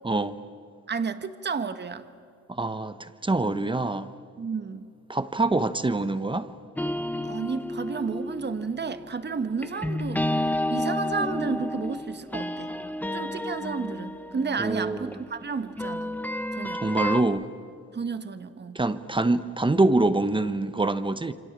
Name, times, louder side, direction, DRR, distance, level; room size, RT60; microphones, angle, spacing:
voice 1, 0.0-0.4 2.5-4.1 5.1-6.5 14.6-15.2 16.7-17.4 18.7-21.3, right 2 dB, 15° right, 1.0 m, -25 dB
voice 2, 0.9-2.1 4.4-4.9 7.2-12.7 13.1-16.1 16.6-16.8 17.9-18.8, right 5 dB, 35° right, 1.6 m, -32 dB
sound 1, 6.8-17.2, left 1 dB, 5° left, 1.1 m, -31 dB
27.5 x 25.0 x 7.4 m
cardioid pair, 90°, 30 cm